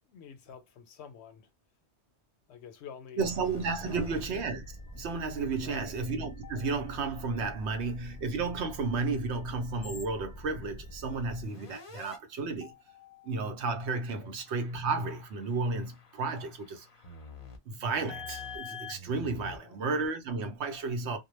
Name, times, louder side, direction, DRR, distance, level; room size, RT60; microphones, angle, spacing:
voice 1, 0.1-1.5 2.5-3.3 3.8-4.2 5.5-5.9 14.2-14.3 19.5-19.8, left 7 dB, 70° left, 0.8 m, -48 dB
sound 1, 3.2-12.2 12.6-14.0 14.5-19.8, left 2 dB, 35° left, 0.6 m, -46 dB
voice 2, 3.2-12.7 13.2-16.9 17.7-21.2, right 4 dB, 70° right, 0.9 m, -33 dB
2.2 x 2.2 x 3.0 m
omnidirectional pair, 1.2 m